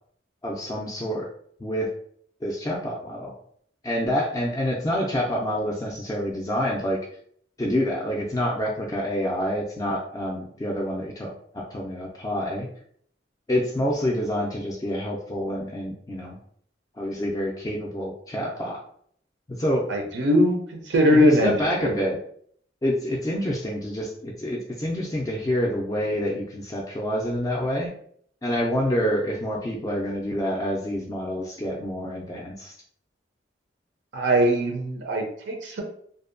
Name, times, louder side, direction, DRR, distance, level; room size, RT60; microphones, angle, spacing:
voice 1, 0.4-1.3 1.6-1.9 2.4-3.3 3.8-7.0 7.6-12.7 13.5-16.4 17.0-18.8 19.5-19.9 21.1-22.2 22.8-27.9 28.4-32.7, equal, 20° left, -2 dB, 0.3 m, -27 dB
voice 2, 19.9-21.5 21.8-21.9 34.1-35.8, equal, 85° right, 1 dB, 0.5 m, -21 dB
2.6 x 2.1 x 2.5 m, 0.62 s
head